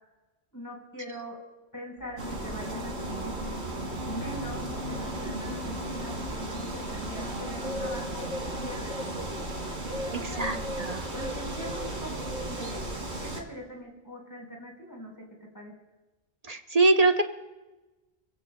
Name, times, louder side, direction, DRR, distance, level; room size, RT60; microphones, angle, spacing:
voice 1, 0.5-1.4 1.7-3.3 4.1-8.3 8.6-10.4 11.1-15.1 15.5-15.7, equal, 20° left, -1 dB, 4.1 m, -42 dB
sound 1, 2.0-9.5, left 4 dB, 85° left, 7.0 m, -45 dB
sound 2, 2.2-13.4, right 1 dB, 90° right, 2.7 m, -35 dB
voice 2, 10.1-11.1 16.4-17.2, right 2 dB, 40° right, 6 dB, 0.8 m, -24 dB
28.5 x 16.0 x 2.2 m, 1.1 s
omnidirectional pair, 1.1 m